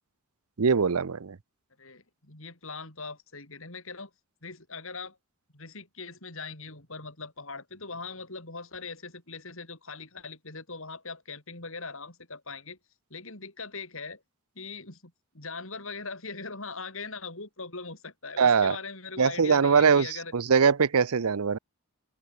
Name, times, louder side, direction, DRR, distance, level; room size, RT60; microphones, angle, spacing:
voice 1, 0.6-1.4 18.4-18.8 19.2-21.6, right 6 dB, 80° right, 0.7 m, -22 dB
voice 2, 1.8-4.1 4.4-5.2 5.5-12.8 13.1-14.2 14.5-20.3, left 4 dB, 60° left, 4.7 m, -41 dB
open air
head